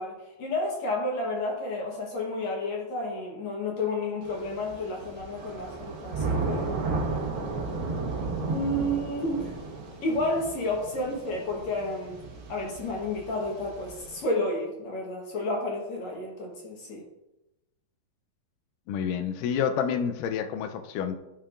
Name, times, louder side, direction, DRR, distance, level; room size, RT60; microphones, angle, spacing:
voice 1, 0.0-6.8 8.5-9.6 10.0-12.2 12.5-17.0, left 1 dB, 65° left, -1 dB, 2.0 m, -31 dB
Thunder / Rain, 4.2-14.2, right 3 dB, 75° right, 1.1 m, -34 dB
voice 2, 18.9-21.2, left 7 dB, 80° left, 7 dB, 2.0 m, -28 dB
11.5 x 5.5 x 2.5 m, 0.96 s
omnidirectional pair, 4.1 m